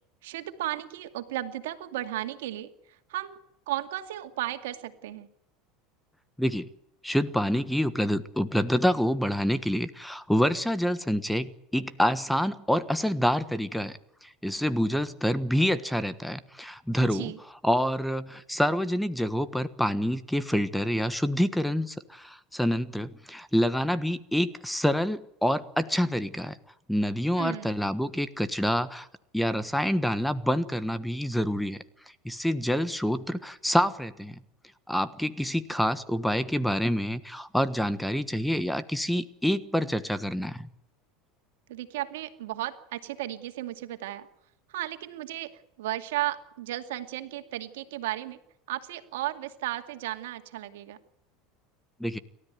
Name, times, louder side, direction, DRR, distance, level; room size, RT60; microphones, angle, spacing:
voice 1, 0.2-3.4 3.7-5.3 17.0-17.4 27.4-27.8 41.7-44.3 44.7-48.4 48.7-51.0, right 14 dB, 85° right, 7 dB, 2.3 m, -34 dB
voice 2, 6.4-6.7 7.0-17.3 17.6-26.6 26.9-29.1 29.3-31.8 32.2-34.4 34.9-40.7 52.0-52.2, equal, ahead, 14 dB, 1.3 m, -27 dB
29.5 x 13.5 x 9.2 m, 0.79 s
supercardioid pair, 115°, 0 cm